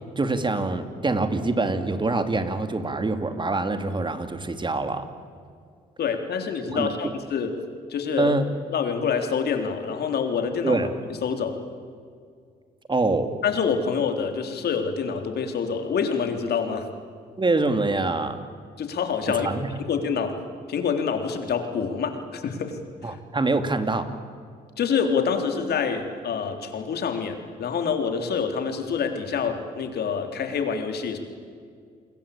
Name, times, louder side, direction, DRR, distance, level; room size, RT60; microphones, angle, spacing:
voice 1, 0.2-5.1 6.7-7.1 8.2-8.5 10.6-10.9 12.9-13.3 17.4-18.4 19.3-19.7 23.0-24.1, right 3 dB, 25° right, 9 dB, 2.7 m, -25 dB
voice 2, 6.0-7.5 7.9-8.4 8.7-10.8 11.2-11.6 13.4-16.9 18.8-19.5 19.8-20.3 20.7-22.8 23.1-23.2 24.8-31.2, left 6 dB, 65° left, 6 dB, 3.7 m, -26 dB
28.5 x 21.5 x 8.7 m, 2.1 s
supercardioid pair, 70°, 18 cm